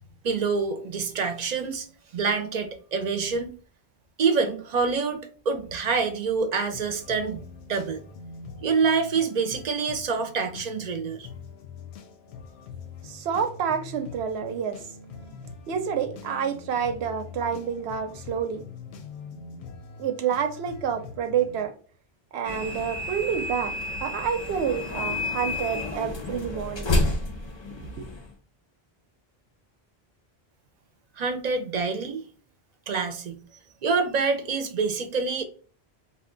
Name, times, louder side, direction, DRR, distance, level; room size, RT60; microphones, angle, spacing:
voice 1, 0.2-1.9 2.1-3.5 4.2-8.0 8.6-11.3 31.2-32.2 32.9-33.4 33.8-35.4, right 5 dB, 55° right, 0.5 m, -26 dB
sound 1, 6.6-21.7, left 4 dB, 90° left, 0.8 m, -44 dB
voice 2, 13.0-14.8 15.7-18.6 20.0-21.7 22.3-23.8 24.0-27.0 27.7-28.0, right 7 dB, 85° right, 0.8 m, -28 dB
sound 2, 22.5-28.3, left 2 dB, 40° left, 0.4 m, -30 dB
2.7 x 2.1 x 3.6 m
omnidirectional pair, 1.0 m